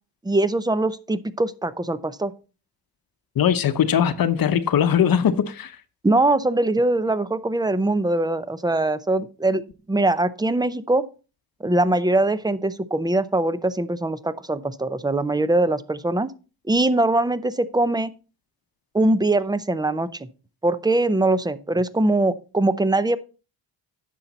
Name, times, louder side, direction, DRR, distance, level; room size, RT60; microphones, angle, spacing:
voice 1, 0.2-2.3 6.0-9.6 9.9-11.0 11.6-16.3 16.7-18.1 18.9-20.1 20.6-23.2, right 2 dB, 10° right, 0.6 m, -22 dB
voice 2, 3.4-5.8, left 8 dB, 55° left, 0.9 m, -20 dB
9.9 x 6.8 x 4.1 m
cardioid pair, 100°, 43 cm